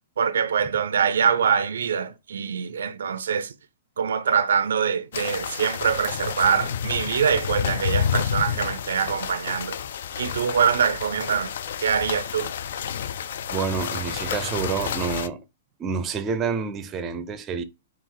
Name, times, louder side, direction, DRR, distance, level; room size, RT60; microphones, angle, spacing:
voice 1, 0.2-3.5 4.0-9.8 10.2-11.5 11.8-12.5, right 7 dB, 85° right, 0.4 m, -24 dB
sound 1, 5.1-15.3, left 8 dB, 65° left, 0.3 m, -30 dB
voice 2, 13.5-15.4 15.8-17.6, right 6 dB, 20° right, 0.5 m, -28 dB
4.3 x 2.4 x 3.8 m
hypercardioid pair, 150°, 0 cm